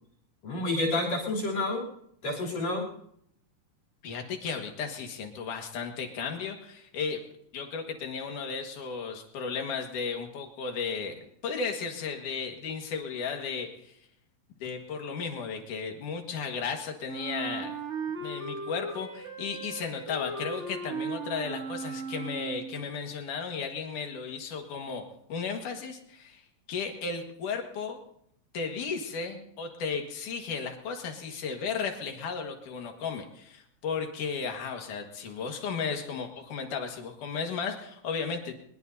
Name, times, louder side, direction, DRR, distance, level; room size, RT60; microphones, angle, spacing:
voice 1, 0.4-1.8 2.2-2.9, left 2 dB, 60° left, -4 dB, 4.4 m, -29 dB
voice 2, 4.0-7.2 7.5-11.2 11.4-13.9 14.6-17.8 18.2-25.0 25.3-26.4 26.7-28.0 28.5-38.5, left 5 dB, 90° left, 4 dB, 3.2 m, -34 dB
Wind instrument woodwind instrument, 17.1-22.8, right 3 dB, 50° right, 0.8 m, -37 dB
22.5 x 21.5 x 2.7 m, 0.71 s
omnidirectional pair, 3.5 m